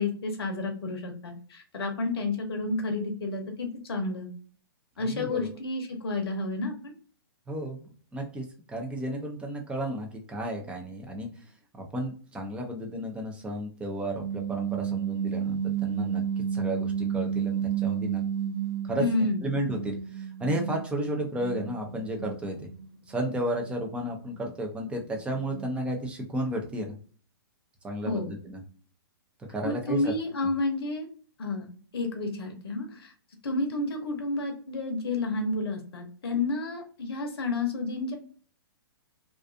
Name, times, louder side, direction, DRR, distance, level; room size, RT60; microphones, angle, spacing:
voice 1, 0.0-4.3 5.0-6.9 19.0-19.5 28.0-28.3 29.6-31.1 31.4-31.6 31.9-33.1 33.4-38.2, left 3 dB, 80° left, 4 dB, 0.7 m, -30 dB
voice 2, 5.0-5.5 7.5-11.3 11.7-18.2 18.8-19.0 19.4-22.7 23.1-26.9 27.8-28.6 29.5-30.1, right 1 dB, 10° right, 2 dB, 0.5 m, -33 dB
sound 1, 14.0-19.3 19.6-25.9, right 8 dB, 60° right, 0.9 m, -32 dB
2.5 x 2.3 x 2.4 m, 0.43 s
hypercardioid pair, 135°, 13 cm